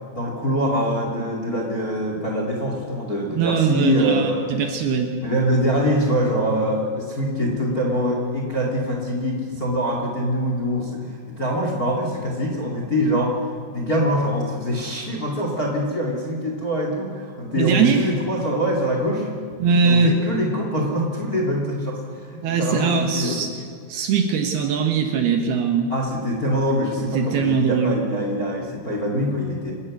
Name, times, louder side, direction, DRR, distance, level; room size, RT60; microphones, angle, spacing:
voice 1, 0.1-4.4 5.2-13.3 13.7-19.3 19.8-23.4 25.9-29.7, equal, 25° left, 1 dB, 2.1 m, -24 dB
voice 2, 3.3-5.1 17.5-18.1 19.6-20.1 22.4-23.5 23.9-25.9 27.0-28.0, right 5 dB, 65° right, 4 dB, 3.0 m, -21 dB
27.5 x 13.0 x 8.3 m, 2.3 s
omnidirectional pair, 5.4 m